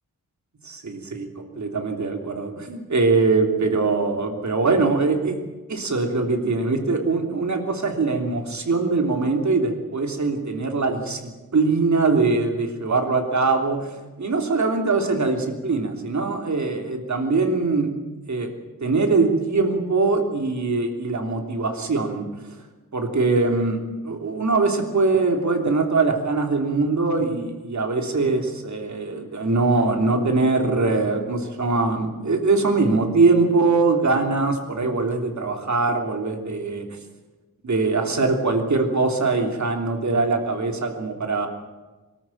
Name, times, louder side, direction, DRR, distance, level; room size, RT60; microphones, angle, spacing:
voice 1, 0.6-1.3 1.6-5.4 5.7-13.9 14.2-17.9 18.3-18.5 18.8-22.6 22.9-36.8 37.6-41.5, right 3 dB, 55° right, 4 dB, 3.2 m, -22 dB
23.5 x 13.5 x 9.1 m, 1.2 s
wide cardioid pair, 125°, 35 cm